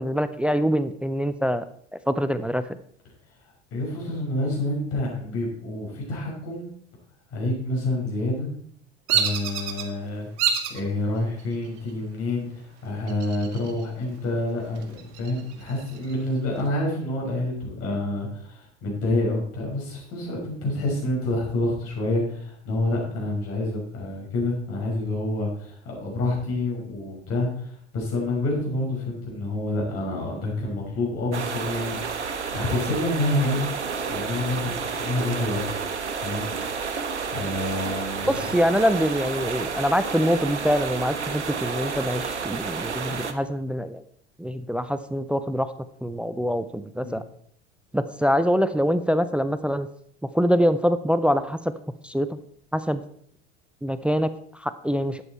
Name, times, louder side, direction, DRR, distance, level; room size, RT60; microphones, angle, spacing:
voice 1, 0.0-1.7 2.1-2.7 38.3-44.0 44.4-45.7 46.0-47.2 47.9-49.9 50.3-51.7 52.0-52.3 52.7-53.0 53.8-55.2, equal, 5° right, 12 dB, 0.4 m, -24 dB
voice 2, 3.7-6.7 7.3-8.5 9.1-12.5 12.8-33.6 34.1-35.7 36.2-36.5 37.3-38.4 47.0-47.2, left 2 dB, 40° left, -2 dB, 5.8 m, -28 dB
Bird vocalization bird call bird song, 9.1-9.8 10.4-10.8 11.4-11.9 13.1-13.8 14.2-14.3 14.7-16.2, right 7 dB, 50° right, 1.9 m, -27 dB
sound 1, 31.3-43.3, right 5 dB, 80° right, 1.1 m, -30 dB
12.0 x 8.7 x 4.4 m, 0.63 s
figure-of-eight pair, 70°, 34 cm